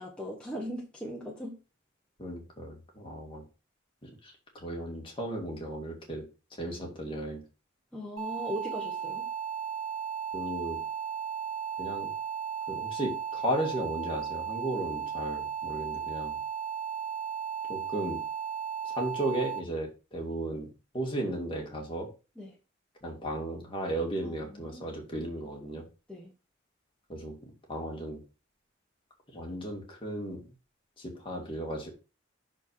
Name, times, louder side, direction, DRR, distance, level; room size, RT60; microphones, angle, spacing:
voice 1, 0.0-1.6 7.9-9.3 22.4-22.5 24.2-24.9 26.1-26.3, equal, 5° left, -3 dB, 1.4 m, -39 dB
voice 2, 2.2-3.4 4.0-6.3 6.6-7.4 10.3-10.8 11.8-12.1 12.7-16.4 17.7-18.2 18.8-20.7 20.9-22.1 23.0-25.9 27.1-28.2 29.3-30.5 31.0-31.9, right 1 dB, 25° left, 0 dB, 2.1 m, -35 dB
sound 1, 8.2-19.6, right 8 dB, 85° right, 2.4 m, -35 dB
6.2 x 4.4 x 5.6 m, 0.32 s
head